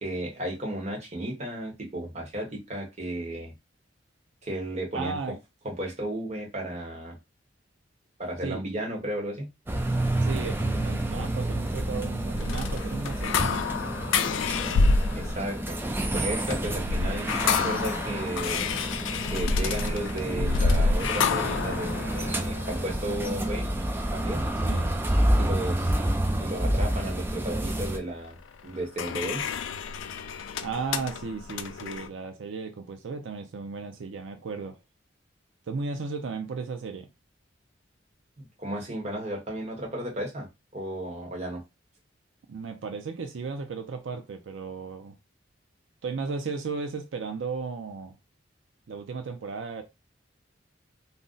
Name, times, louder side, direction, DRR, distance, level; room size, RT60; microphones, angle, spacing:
voice 1, 0.0-3.5 4.4-5.3 5.6-7.2 8.2-9.5 15.1-15.8 16.1-18.7 19.3-23.7 24.1-24.5 25.4-25.9 26.4-28.4 28.6-29.5 38.4-40.5 40.7-41.6, right 1 dB, 35° right, 1.0 m, -34 dB
voice 2, 4.9-5.4 8.4-8.6 10.2-13.7 24.6-24.9 30.6-34.8 35.7-37.1 42.5-45.1 46.0-48.2 48.9-49.8, right 4 dB, 85° right, 0.4 m, -35 dB
sound 1, 9.7-28.0, right 1 dB, 10° right, 0.3 m, -29 dB
sound 2, 12.3-24.7 28.4-32.1, left 4 dB, 90° left, 0.4 m, -28 dB
2.6 x 2.1 x 3.7 m
head